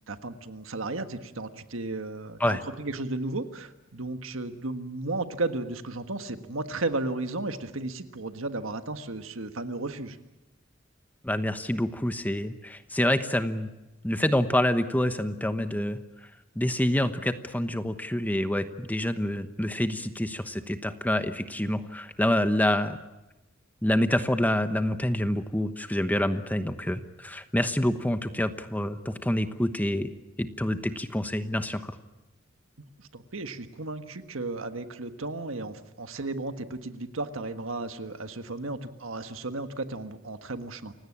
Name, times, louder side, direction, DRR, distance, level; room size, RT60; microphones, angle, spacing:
voice 1, 0.1-10.2 33.0-40.9, right 2 dB, 85° right, 9 dB, 1.5 m, -34 dB
voice 2, 11.2-13.7 14.0-16.0 16.5-23.0 23.8-30.1 30.4-31.9, left 1 dB, 10° left, 10 dB, 1.1 m, -27 dB
29.0 x 17.0 x 8.7 m, 1.0 s
head